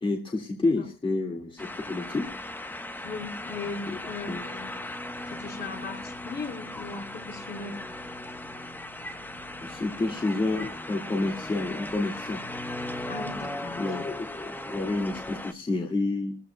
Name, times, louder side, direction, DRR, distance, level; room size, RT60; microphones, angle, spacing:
voice 1, 0.0-2.3 3.9-4.0 4.3-4.4 9.6-12.4 13.8-16.4, left 2 dB, 25° left, 1 dB, 2.0 m, -29 dB
sound 1, 1.6-15.5, left 1 dB, 10° left, 1.0 m, -37 dB
voice 2, 3.0-4.8 5.3-7.8 13.0-14.1, left 4 dB, 60° left, 1 dB, 4.4 m, -38 dB
29.5 x 14.0 x 2.2 m, 0.32 s
cardioid pair, 90°, 20 cm